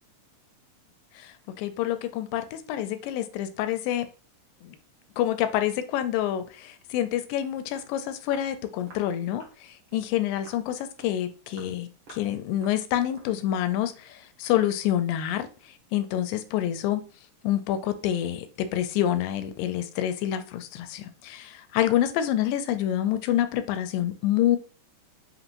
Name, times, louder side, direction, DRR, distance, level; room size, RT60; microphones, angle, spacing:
voice 1, 1.1-4.1 4.6-4.8 5.2-17.0 17.4-24.6, left 11 dB, 85° left, 2.2 m, -27 dB
Walk footsteps, 7.8-7.9 8.3-8.5 8.9-9.1 9.4-9.6 9.9-10.1 10.5-10.7 11.0-11.2 11.5-11.8 12.1-12.3 12.6-12.8 13.1-13.4 13.7-13.9, right 3 dB, 70° right, 1.2 m, -50 dB
5.6 x 3.0 x 2.5 m
omnidirectional pair, 3.9 m